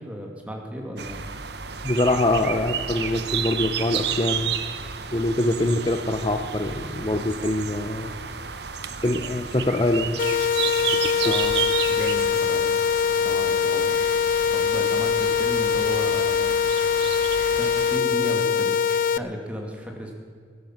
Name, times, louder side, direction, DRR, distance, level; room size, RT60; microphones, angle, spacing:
voice 1, 0.0-1.4 11.2-11.6 11.9-12.8 13.2-14.0 14.5-16.6 17.5-20.1, equal, 5° right, 1 dB, 2.3 m, -34 dB
sound 1, 1.0-18.0, right 8 dB, 60° right, 0.9 m, -32 dB
voice 2, 1.8-4.5 5.1-8.1 9.0-10.2 11.2-11.4, left 1 dB, 25° left, 6 dB, 0.7 m, -24 dB
sound 2, 10.2-19.2, left 7 dB, 50° left, 0.4 m, -22 dB
16.0 x 12.0 x 7.3 m, 2.1 s
head